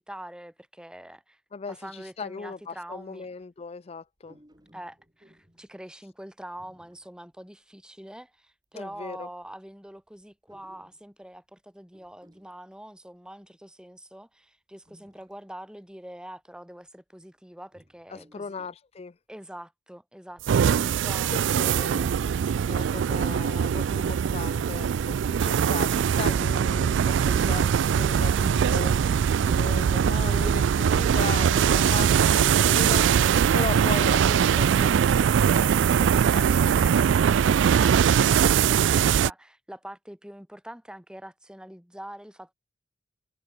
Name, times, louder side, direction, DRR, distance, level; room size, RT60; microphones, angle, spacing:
voice 1, 0.0-1.4 1.7-3.3 4.7-18.7 19.3-22.1 37.6-42.5, right 1 dB, 5° right, 1.8 m, -44 dB
voice 2, 1.5-4.4 8.7-9.3 18.1-19.1 21.3-22.1 22.7-37.3, left 4 dB, 35° left, 0.4 m, -38 dB
sound 1, 2.0-2.1 2.9-3.1 3.4-3.7 4.2-5.8 6.5-7.3 7.8-7.9 8.6-8.7 8.9-11.6 11.9-13.5 14.2-14.3 14.8-15.6 15.9-16.0 16.6-17.0 17.5-18.5 18.9-19.0 19.3-19.4, equal, 25° right, 6.9 m, -60 dB
sound 2, 20.4-39.3, right 8 dB, 80° right, 0.3 m, -22 dB
head